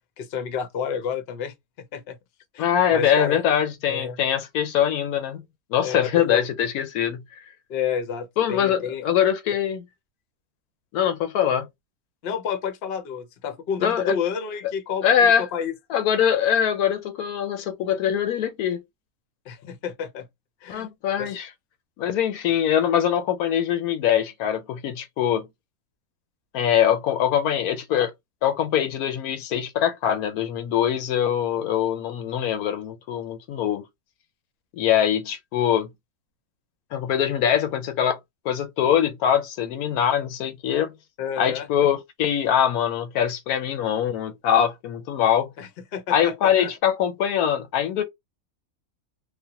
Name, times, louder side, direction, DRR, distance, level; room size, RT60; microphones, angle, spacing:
voice 1, 0.2-2.2 2.5-3.4 3.9-4.2 5.8-6.5 7.7-9.0 12.2-15.7 19.5-20.3 20.6-20.9 21.2-21.3 41.2-41.7 45.6-46.7, left 7 dB, 55° left, 0.7 m, -30 dB
voice 2, 2.6-5.4 5.7-7.2 8.4-9.8 10.9-11.7 13.8-14.2 15.0-15.4 15.9-18.8 20.7-21.5 22.0-25.5 26.5-28.1 28.4-33.8 34.7-35.9 36.9-38.2 38.4-40.9 41.4-45.5 46.1-48.0, left 9 dB, 85° left, 1.1 m, -23 dB
3.1 x 2.2 x 2.8 m
omnidirectional pair, 1.5 m